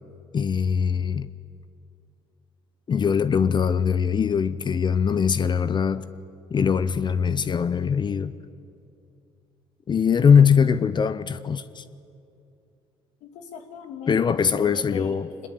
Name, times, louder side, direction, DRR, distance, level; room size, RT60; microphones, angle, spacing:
voice 1, 0.3-1.3 2.9-6.0 6.5-8.3 9.9-11.8 14.1-15.3, left 6 dB, 40° left, 0.8 m, -21 dB
voice 2, 13.2-14.2 14.6-15.5, left 7 dB, 80° left, 2.4 m, -39 dB
23.0 x 20.5 x 8.5 m
supercardioid pair, 80°, 12 cm